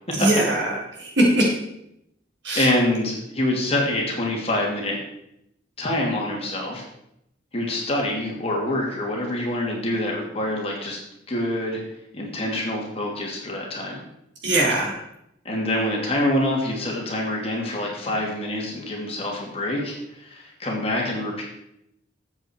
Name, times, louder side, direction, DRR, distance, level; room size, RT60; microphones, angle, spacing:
voice 1, 0.2-1.5 2.4-2.7 14.4-14.9, right 1 dB, 70° right, -2 dB, 4.2 m, -21 dB
voice 2, 2.5-5.0 5.8-6.8 7.5-11.0 11.3-11.8 12.1-14.0 15.4-21.4, left 1 dB, 30° left, -1 dB, 2.7 m, -26 dB
12.5 x 8.1 x 4.6 m, 0.79 s
head